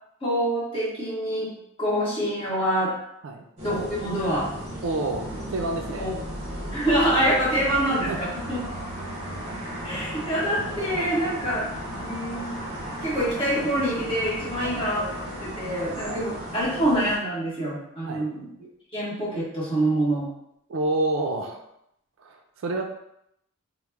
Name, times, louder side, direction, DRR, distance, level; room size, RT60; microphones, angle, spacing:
voice 1, 0.2-1.5 1.8-2.9 3.6-4.5 6.0-6.1 6.7-8.6 9.8-11.7 12.0-15.0 15.4-18.5 18.9-20.3, right 1 dB, 25° left, -8 dB, 1.1 m, -26 dB
sound 1, 3.6-17.2, equal, 30° right, 0.8 m, -35 dB
voice 2, 4.8-5.3 5.5-6.1 8.1-8.2 14.6-14.8 16.1-16.3 18.0-18.3 20.7-21.7 22.2-22.8, right 2 dB, 60° right, 3 dB, 0.4 m, -28 dB
3.0 x 2.0 x 3.4 m, 0.76 s
head